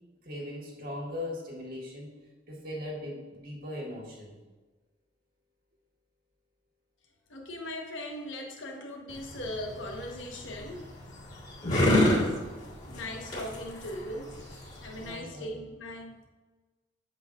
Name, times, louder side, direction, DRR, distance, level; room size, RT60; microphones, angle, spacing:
voice 1, 0.2-2.1 2.5-4.3 15.0-15.5, left 1 dB, 50° right, -2 dB, 1.7 m, -39 dB
voice 2, 7.3-10.8 12.8-14.3 14.8-16.2, left 1 dB, 90° left, 0 dB, 1.3 m, -39 dB
sound 1, 9.1-15.2, left 1 dB, 40° left, 1.9 m, -29 dB
8.0 x 7.6 x 2.5 m, 1.2 s
head